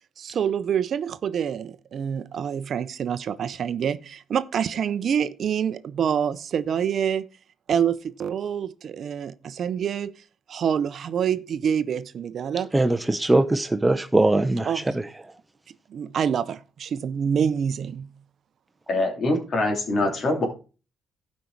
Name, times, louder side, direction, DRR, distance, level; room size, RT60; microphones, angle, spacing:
voice 1, 0.2-7.3 7.7-10.1 10.5-12.7 14.7-15.0 15.9-18.1, right 8 dB, 60° right, 0.6 m, -26 dB
voice 2, 12.7-15.1, right 2 dB, 15° right, 0.7 m, -21 dB
voice 3, 18.9-20.5, left 2 dB, 50° left, 2.8 m, -24 dB
12.0 x 5.3 x 4.6 m
cardioid pair, 90°, 0 cm